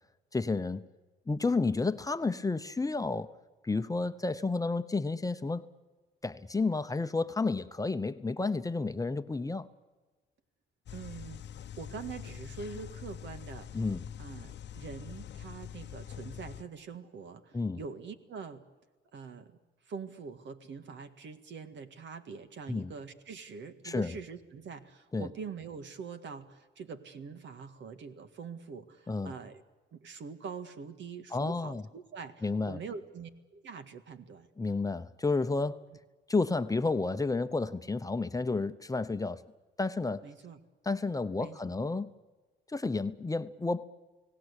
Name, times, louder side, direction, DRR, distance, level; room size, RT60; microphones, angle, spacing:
voice 1, 0.3-0.8 1.3-3.3 3.6-5.7 6.2-9.7 13.7-14.1 17.5-17.8 22.7-22.9 23.8-24.1 25.1-25.3 29.1-29.3 31.3-31.8 32.4-32.8 34.6-35.8 36.3-39.4 39.8-40.3 40.8-42.1 42.7-43.9, left 3 dB, 15° left, 0.9 m, -31 dB
sound 1, 10.9-16.6, left 9 dB, 60° left, 0.8 m, -44 dB
voice 2, 10.9-11.4 11.8-13.8 14.2-18.6 19.1-19.6 19.8-29.6 29.9-34.5 40.2-40.6 41.4-41.7, right 5 dB, 65° right, 1.9 m, -44 dB
29.5 x 18.0 x 8.3 m
cardioid pair, 90°, 20 cm